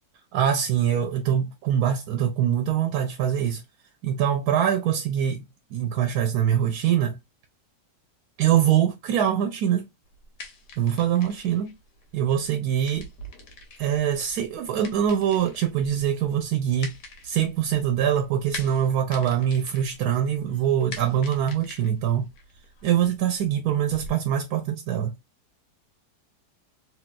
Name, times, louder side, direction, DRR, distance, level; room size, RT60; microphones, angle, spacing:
voice 1, 0.3-3.6 4.0-5.5 5.7-7.2 8.4-9.9 10.8-11.8 12.1-13.1 13.8-16.9 17.2-22.3 22.8-25.1, right 9 dB, 75° right, 1.1 m, -23 dB
sound 1, 10.0-24.1, left 2 dB, 90° left, 1.5 m, -45 dB
3.0 x 3.0 x 2.3 m
omnidirectional pair, 1.7 m